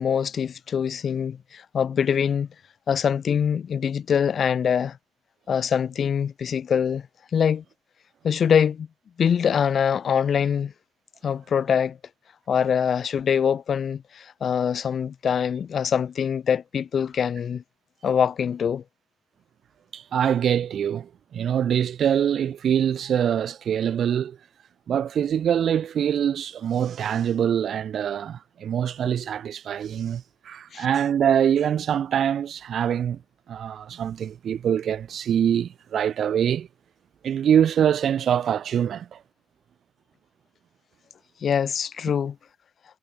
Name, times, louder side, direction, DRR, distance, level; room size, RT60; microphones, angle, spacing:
voice 1, 0.0-2.5 2.9-5.0 5.5-7.1 7.3-7.6 8.2-8.9 9.2-10.7 11.2-12.0 12.5-17.6 18.0-18.8 30.7-30.9 41.4-42.4, left 7 dB, 55° left, 0.3 m, -24 dB
voice 2, 19.9-24.4 24.9-33.2 33.5-36.7 37.2-39.2, right 9 dB, 60° right, 0.3 m, -24 dB
cardioid pair, 90°, 0 cm